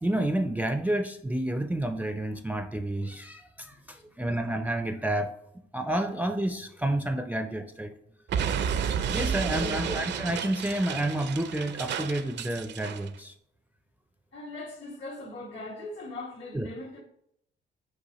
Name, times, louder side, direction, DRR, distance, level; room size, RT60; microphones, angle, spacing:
voice 1, 0.0-5.3 5.7-8.0 9.1-13.3 16.5-16.7, right 1 dB, 10° right, 0.4 m, -30 dB
Explosion, 8.3-13.1, right 7 dB, 65° right, 0.5 m, -31 dB
voice 2, 9.3-9.8 14.3-17.0, left 2 dB, 65° left, 1.8 m, -40 dB
5.8 x 5.5 x 3.0 m
cardioid pair, 90°, 20 cm